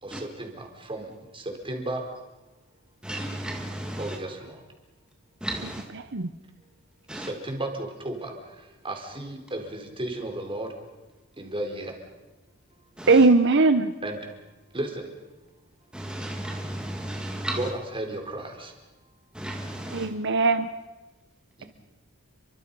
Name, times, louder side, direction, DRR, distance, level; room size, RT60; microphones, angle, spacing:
voice 1, 0.0-2.0 4.0-4.6 7.1-10.7 11.4-11.9 14.0-14.2 14.7-15.1 17.5-18.7 21.6-21.7, right 1 dB, 25° right, 4.4 m, -34 dB
voice 2, 3.0-4.2 5.4-5.9 7.1-7.3 13.0-13.3 15.9-17.7 19.3-20.1, right 1 dB, 5° right, 1.8 m, -34 dB
voice 3, 13.1-13.9 19.9-20.7, right 3 dB, 60° right, 0.9 m, -19 dB
30.0 x 24.0 x 5.5 m
head